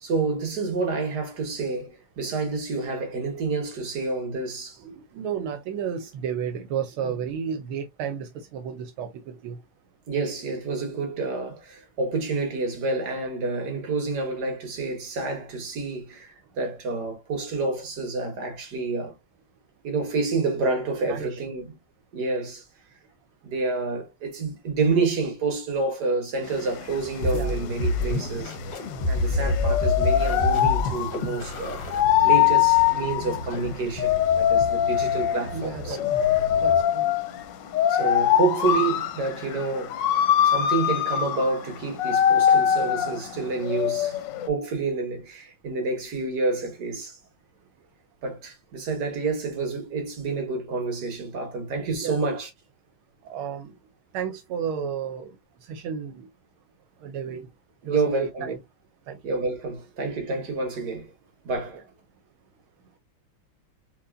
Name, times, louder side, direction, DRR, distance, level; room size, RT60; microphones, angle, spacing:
voice 1, 0.0-4.8 7.0-7.1 10.1-19.1 19.8-21.7 22.1-22.6 23.4-28.6 29.1-31.8 32.2-36.0 37.9-40.0 40.4-44.2 44.5-47.2 48.2-52.5 57.3-57.4 57.8-58.5 59.2-61.1 61.4-61.8, right 3 dB, 55° right, 1.9 m, -28 dB
voice 2, 4.8-9.6 21.0-21.4 27.3-27.5 35.5-36.0 36.6-37.1 42.5-42.6 51.8-52.2 53.2-53.8 54.1-55.4 55.6-56.3 57.0-57.5 57.8-58.6 59.1-59.2, right 7 dB, 85° right, 1.5 m, -32 dB
sound 1, 26.5-44.5, left 10 dB, 70° left, 1.1 m, -23 dB
sound 2, 27.2-36.9, left 1 dB, 45° left, 0.9 m, -30 dB
4.5 x 2.7 x 2.5 m
omnidirectional pair, 2.3 m